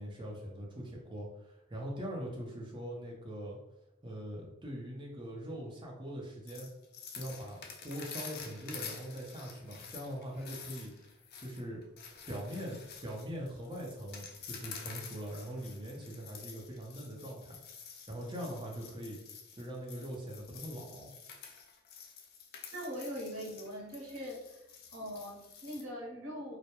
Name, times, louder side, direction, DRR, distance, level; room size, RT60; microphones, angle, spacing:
voice 1, 0.0-3.6 4.0-6.7 7.1-10.9 11.4-11.8 12.3-17.6 18.1-19.2 19.5-21.1, equal, 20° right, -2 dB, 0.5 m, -42 dB
sound 1, 6.5-25.8, left 6 dB, 45° left, 0.3 m, -49 dB
voice 2, 22.7-24.6 24.9-26.6, equal, 75° right, -2 dB, 0.8 m, -41 dB
2.2 x 2.0 x 2.8 m, 0.91 s
head